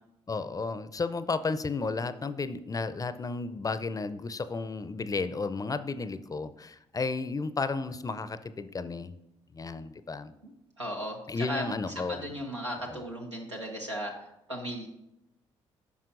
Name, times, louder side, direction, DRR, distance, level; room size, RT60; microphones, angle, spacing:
voice 1, 0.3-9.1 9.5-10.3 11.3-12.3 12.9-13.0, left 4 dB, 25° left, 13 dB, 0.5 m, -33 dB
voice 2, 10.8-11.7 12.1-14.9, equal, 90° right, -1 dB, 0.9 m, -36 dB
13.0 x 5.5 x 2.6 m, 0.86 s
figure-of-eight pair, 40°, 15 cm